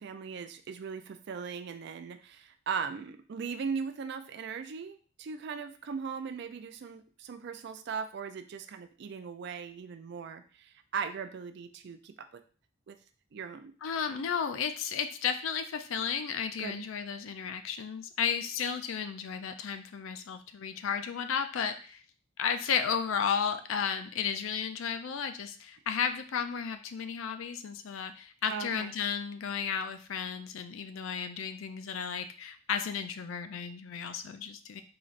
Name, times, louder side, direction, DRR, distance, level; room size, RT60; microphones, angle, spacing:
voice 1, 0.0-12.4 12.9-13.0 13.3-13.7 14.1-14.3 16.6-16.8 28.5-28.9, right 6 dB, 55° right, 9 dB, 0.4 m, -39 dB
voice 2, 13.8-22.0 22.4-34.8, left 7 dB, 80° left, 8 dB, 0.4 m, -33 dB
3.9 x 3.1 x 2.5 m, 0.40 s
head